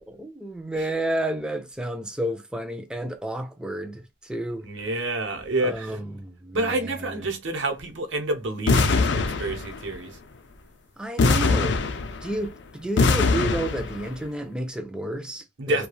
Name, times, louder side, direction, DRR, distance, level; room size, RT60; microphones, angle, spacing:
voice 1, 0.1-4.7 5.6-7.3 11.0-11.8 12.2-15.9, right 1 dB, 5° right, 0.3 m, -31 dB
voice 2, 4.6-5.9 6.5-10.2 15.6-15.9, right 2 dB, 85° right, 0.8 m, -28 dB
sound 1, 8.7-9.9 11.2-12.4 13.0-14.1, left 3 dB, 65° left, 0.4 m, -22 dB
2.3 x 2.2 x 3.0 m
head